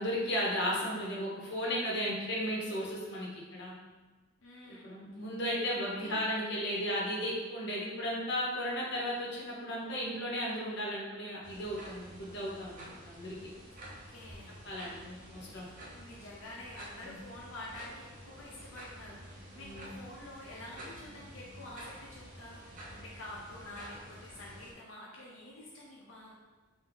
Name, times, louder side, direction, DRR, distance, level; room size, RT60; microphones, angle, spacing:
voice 1, 0.0-3.7 4.7-13.5 14.5-15.7 17.0-17.2 19.5-19.9, equal, 60° left, -4 dB, 1.0 m, -35 dB
voice 2, 4.4-4.9 6.0-6.2 13.9-14.6 15.9-26.3, left 1 dB, 85° left, -5 dB, 0.7 m, -48 dB
sound 1, 11.4-24.7, right 1 dB, 45° right, 0.8 m, -50 dB
3.5 x 2.7 x 3.8 m, 1.2 s
head